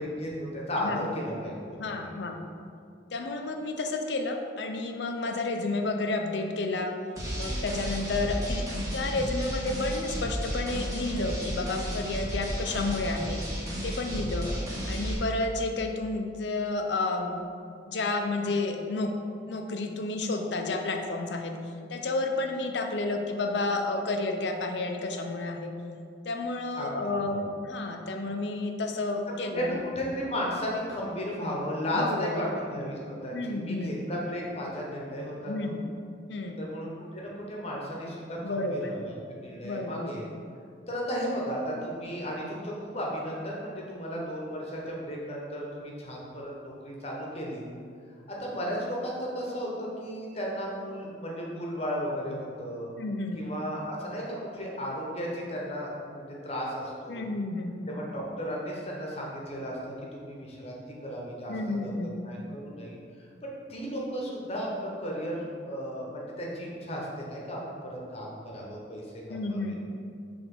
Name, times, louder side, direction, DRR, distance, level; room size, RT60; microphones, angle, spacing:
voice 1, 0.0-1.8 2.3-2.4 14.4-14.5 26.8-26.9 27.2-27.4 29.6-35.7 36.6-40.2 40.9-47.6 48.3-52.9 53.3-57.3 57.9-59.8 60.1-61.6 61.8-61.9 62.2-69.0 69.3-69.8, equal, 35° left, -3 dB, 1.1 m, -34 dB
voice 2, 0.8-1.1 1.8-2.5 3.1-6.9 7.3-8.7 8.9-13.4 13.8-14.5 14.9-17.4 17.9-19.1 19.5-21.6 21.9-25.7 26.2-29.9 31.9-32.5 33.3-34.0 35.4-35.8 36.3-36.6 38.4-38.9 39.6-40.1 53.0-53.5 57.1-57.8 61.5-62.2 69.3-69.7, left 2 dB, 70° left, 4 dB, 0.6 m, -31 dB
sound 1, 7.2-15.1, equal, 20° right, 1.2 m, -33 dB
6.0 x 3.4 x 5.3 m, 2.3 s
head